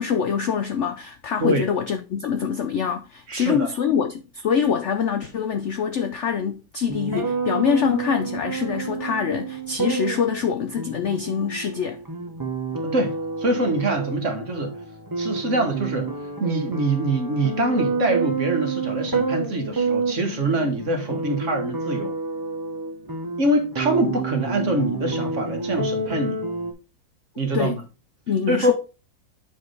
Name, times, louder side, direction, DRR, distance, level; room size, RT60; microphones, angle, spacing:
voice 1, 0.0-12.0 27.5-27.8 28.3-28.7, left 7 dB, 80° left, 0.6 m, -25 dB
voice 2, 3.3-3.7 12.8-14.7 15.2-16.1 16.4-22.1 23.4-26.4 27.4-27.8 28.5-28.7, right 1 dB, 45° right, 1.6 m, -24 dB
sound 1, 6.9-26.7, right 3 dB, 20° right, 0.6 m, -29 dB
7.5 x 4.8 x 3.9 m
omnidirectional pair, 2.0 m